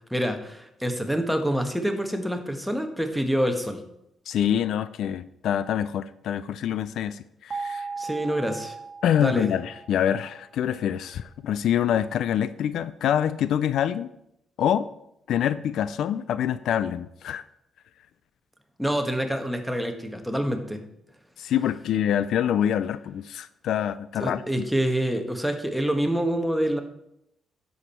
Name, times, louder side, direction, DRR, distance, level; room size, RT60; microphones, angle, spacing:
voice 1, 0.1-3.8 8.0-8.7 9.2-9.5 18.8-20.8 24.2-26.8, equal, ahead, 5 dB, 1.3 m, -26 dB
voice 2, 4.3-7.9 9.0-14.1 14.6-14.9 15.3-17.4 21.4-24.6, left 9 dB, 75° left, 15 dB, 0.4 m, -26 dB
sound 1, 7.5-10.5, right 4 dB, 35° right, 1.6 m, -37 dB
10.0 x 7.2 x 4.4 m, 0.80 s
cardioid pair, 90°, 0 cm